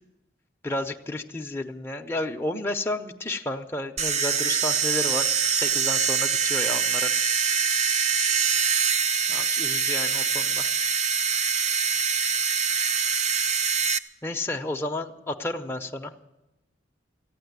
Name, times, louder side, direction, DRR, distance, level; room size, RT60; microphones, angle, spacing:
voice 1, 0.6-7.1 9.3-10.7 14.2-16.1, left 1 dB, 15° left, 2 dB, 0.6 m, -31 dB
sound 1, 4.0-14.0, right 6 dB, 35° right, 0.6 m, -24 dB
14.5 x 9.6 x 9.5 m, 0.94 s
head